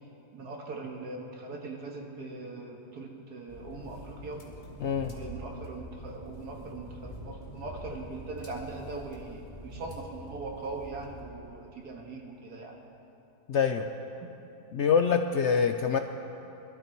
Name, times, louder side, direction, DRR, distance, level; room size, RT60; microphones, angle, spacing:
voice 1, 0.3-4.4 5.1-12.8, right 3 dB, 80° right, 1 dB, 2.2 m, -40 dB
sound 1, 3.5-11.2, equal, 30° left, 1.9 m, -45 dB
voice 2, 4.8-5.1 13.5-13.9 14.7-16.0, left 6 dB, 65° left, 6 dB, 0.7 m, -25 dB
22.0 x 12.5 x 4.5 m, 2.9 s
omnidirectional pair, 1.7 m